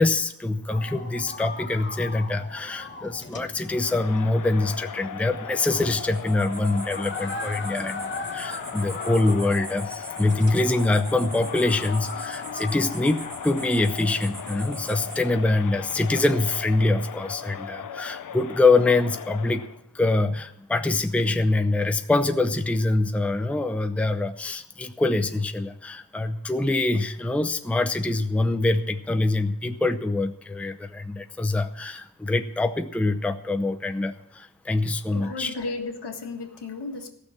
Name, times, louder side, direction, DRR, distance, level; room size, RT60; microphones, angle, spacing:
voice 1, 0.0-19.7 19.9-35.5, left 2 dB, 5° left, 8 dB, 0.6 m, -24 dB
sound 1, 0.7-16.1, left 3 dB, 30° left, 1.2 m, -40 dB
Crowd, 3.6-19.8, left 8 dB, 50° left, 0.6 m, -38 dB
sound 2, 6.0-15.2, right 2 dB, 45° right, 2.1 m, -43 dB
voice 2, 35.1-37.1, left 3 dB, 75° left, 4 dB, 1.7 m, -34 dB
15.5 x 6.6 x 8.4 m, 0.78 s
wide cardioid pair, 105°, 41 cm